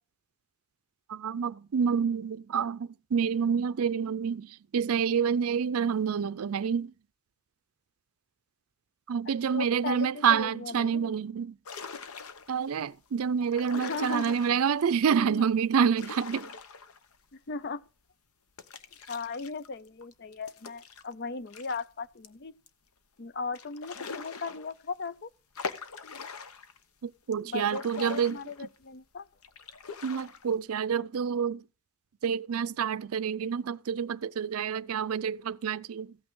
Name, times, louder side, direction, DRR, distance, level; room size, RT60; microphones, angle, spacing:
voice 1, 1.1-6.9 9.1-11.6 12.5-16.5 27.0-28.7 30.0-31.6 32.2-36.2, right 7 dB, 80° right, 0.4 m, -28 dB
voice 2, 9.5-11.2 13.7-14.4 15.2-15.5 17.3-17.8 19.1-22.5 23.2-25.3 27.4-29.3, left 4 dB, 50° left, 0.5 m, -37 dB
sound 1, 11.7-12.7 13.4-14.8 15.7-17.3 17.7-17.8 18.6-21.8 22.2-22.3 22.7-22.8 23.5-25.1 25.6-26.8 27.3-28.9 29.4-30.6, left 5 dB, 85° left, 0.9 m, -43 dB
14.5 x 8.7 x 3.7 m
head